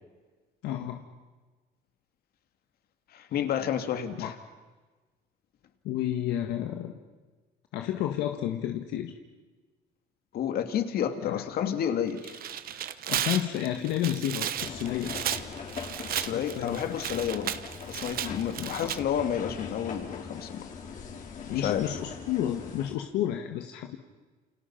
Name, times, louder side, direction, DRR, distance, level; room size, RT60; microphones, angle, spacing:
voice 1, 0.6-1.0 4.2-4.3 5.8-6.9 7.7-9.1 11.2-11.4 13.1-15.2 16.2-17.0 18.6-18.9 21.5-24.0, left 11 dB, 90° left, 4 dB, 1.6 m, -31 dB
voice 2, 3.1-4.3 10.3-12.4 16.1-20.7 21.5-21.9, left 9 dB, 65° left, 7 dB, 2.6 m, -30 dB
Tearing, 12.1-19.0, right 10 dB, 60° right, 1.2 m, -34 dB
sound 1, 14.6-22.9, left 6 dB, 50° left, 4.5 m, -41 dB
29.5 x 28.5 x 5.9 m, 1.3 s
cardioid pair, 110°, 17 cm